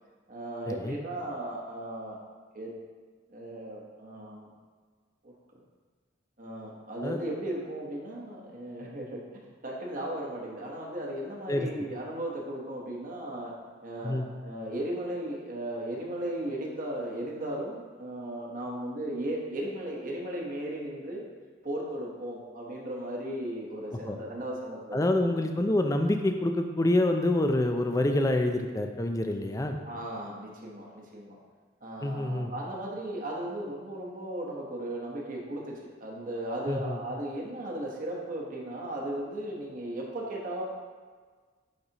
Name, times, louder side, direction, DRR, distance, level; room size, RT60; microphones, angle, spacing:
voice 1, 0.3-2.2 2.5-2.7 3.3-4.5 5.2-5.3 6.4-13.5 13.8-21.2 21.6-25.0 29.8-31.4 31.8-35.7 36.0-40.6, right 1 dB, 45° right, -2 dB, 1.1 m, -36 dB
voice 2, 24.9-29.8 32.0-32.5 36.7-37.0, left 1 dB, 15° left, 5 dB, 0.4 m, -27 dB
10.5 x 4.0 x 2.9 m, 1.5 s
head